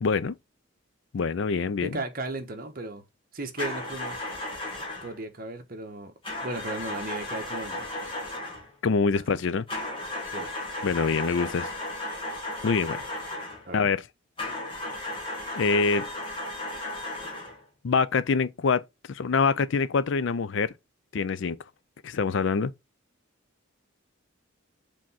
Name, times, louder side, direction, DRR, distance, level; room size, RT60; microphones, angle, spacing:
voice 1, 0.0-0.3 1.1-2.0 8.8-9.6 10.8-11.7 12.6-13.0 13.7-14.0 15.1-15.2 15.6-16.1 17.8-20.7 21.1-21.6 22.0-22.7, left 5 dB, 65° left, 0.4 m, -25 dB
voice 2, 1.8-3.0 3.3-4.2 5.0-6.1 6.4-7.9 9.0-9.4 10.3-10.5 13.7-13.9, right 2 dB, 45° right, 1.1 m, -36 dB
sound 1, 3.6-5.2 6.2-8.7 9.7-13.7 14.4-17.6, left 1 dB, 25° left, 1.5 m, -35 dB
5.1 x 3.5 x 5.6 m
head